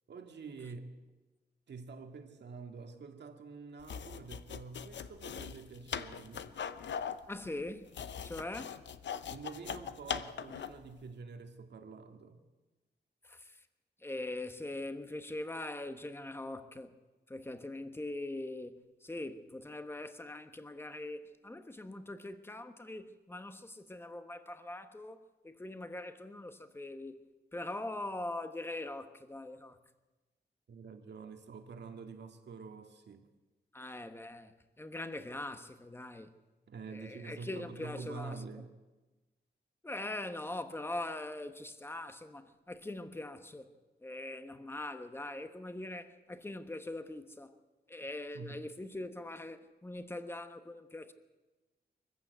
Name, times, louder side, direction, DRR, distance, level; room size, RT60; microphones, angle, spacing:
voice 1, 0.1-1.0 1.7-6.5 9.3-12.4 30.7-33.3 36.7-38.8 48.3-48.6, right 4 dB, 75° right, 2.1 m, -47 dB
sound 1, 3.8-10.9, left 8 dB, 85° left, 0.8 m, -41 dB
voice 2, 7.3-7.9 8.2-8.8 13.2-13.6 14.0-16.9 17.3-27.3 27.5-29.8 33.7-36.4 36.9-38.6 39.8-43.7 44.0-47.5 47.9-51.1, left 2 dB, 15° left, 1.2 m, -42 dB
23.5 x 15.0 x 8.1 m
wide cardioid pair, 150°, 18 cm